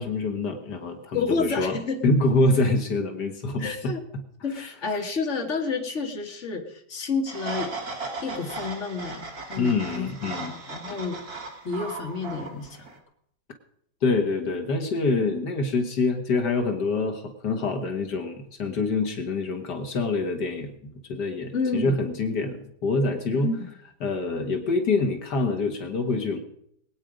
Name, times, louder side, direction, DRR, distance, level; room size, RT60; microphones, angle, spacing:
voice 1, 0.0-1.8 2.0-4.2 9.6-10.5 10.9-11.0 14.0-23.5 24.0-26.4, left 3 dB, 75° left, 5 dB, 2.1 m, -26 dB
voice 2, 1.1-2.0 3.6-4.0 4.4-7.7 8.2-11.4 11.6-12.8 21.5-22.0 23.4-23.6, left 4 dB, 45° left, 3 dB, 2.3 m, -30 dB
sound 1, 7.3-13.0, right 3 dB, 60° right, 2.9 m, -37 dB
22.5 x 9.2 x 5.1 m, 0.71 s
omnidirectional pair, 1.8 m